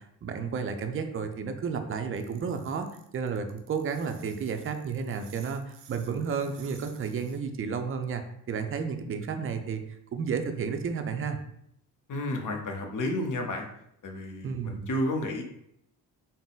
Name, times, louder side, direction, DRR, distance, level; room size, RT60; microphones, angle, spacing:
voice 1, 0.0-2.9 3.1-8.2 8.5-9.8 10.1-11.4 14.4-14.9, right 6 dB, 35° right, 7 dB, 0.4 m, -32 dB
sound 1, 2.2-7.4, right 8 dB, 80° right, 0.6 m, -54 dB
voice 2, 12.1-13.7 14.0-15.4, left 1 dB, 50° left, 3 dB, 0.8 m, -31 dB
3.8 x 2.0 x 3.9 m, 0.74 s
cardioid pair, 80°, 41 cm